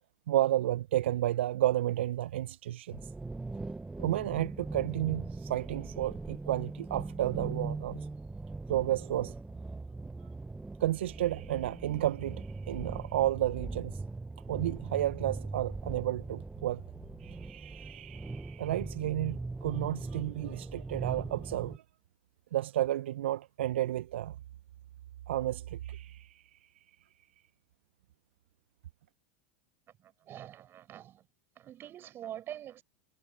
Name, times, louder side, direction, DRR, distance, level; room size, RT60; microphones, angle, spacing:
voice 1, 0.3-3.0 4.0-8.1 8.7-9.3 10.8-14.0 14.5-16.8 17.2-21.8 22.5-24.4 25.3-26.6, right 13 dB, 70° right, 1.2 m, -32 dB
sound 1, 2.9-21.8, right 3 dB, 10° right, 1.2 m, -40 dB
voice 2, 29.9-31.3 31.5-32.8, right 11 dB, 35° right, 7.8 m, -45 dB
figure-of-eight pair, 85°, 6 cm